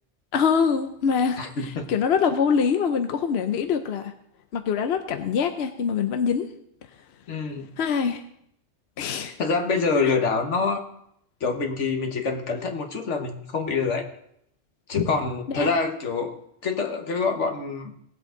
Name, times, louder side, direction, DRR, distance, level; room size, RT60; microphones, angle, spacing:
voice 1, 0.3-4.1 4.5-6.5 7.8-8.2 9.0-9.4 10.0-10.1 15.5-15.7, left 6 dB, 65° left, 7 dB, 0.9 m, -24 dB
voice 2, 1.4-1.9 7.3-7.7 9.4-10.8 11.4-14.0 14.9-17.9, left 4 dB, 80° left, 5 dB, 1.6 m, -26 dB
19.0 x 7.7 x 3.8 m, 0.73 s
omnidirectional pair, 1.2 m